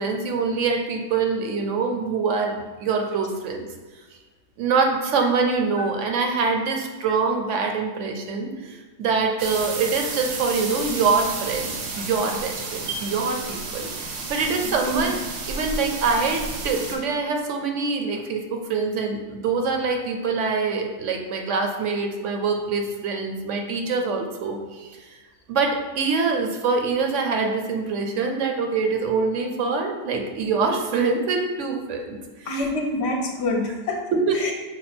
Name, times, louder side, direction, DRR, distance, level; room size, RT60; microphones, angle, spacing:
voice 1, 0.0-3.7 4.6-15.2 15.5-25.0 25.5-32.7 34.1-34.5, right 4 dB, 70° right, 3 dB, 0.9 m, -25 dB
sound 1, 9.4-17.0, right 3 dB, 90° right, 1.1 m, -32 dB
voice 2, 32.5-34.0 34.3-34.5, left 2 dB, 65° left, 1 dB, 0.8 m, -26 dB
5.1 x 2.3 x 4.3 m, 1.3 s
omnidirectional pair, 1.4 m